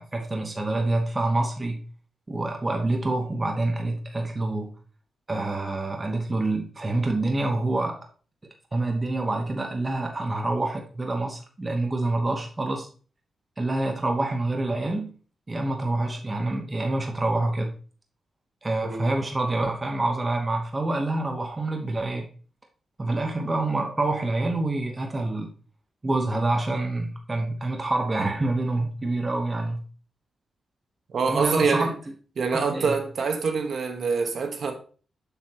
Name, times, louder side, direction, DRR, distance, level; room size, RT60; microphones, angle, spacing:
voice 1, 0.0-1.8 2.3-4.7 5.3-8.0 8.7-12.9 13.6-15.1 15.5-17.7 18.6-22.3 23.0-25.5 26.0-29.8 31.3-31.9 32.5-32.9, right 2 dB, 20° right, 0.9 m, -27 dB
voice 2, 31.1-31.9 32.4-34.7, right 5 dB, 60° right, 1.2 m, -25 dB
6.8 x 6.5 x 2.9 m
wide cardioid pair, 125°, 0 cm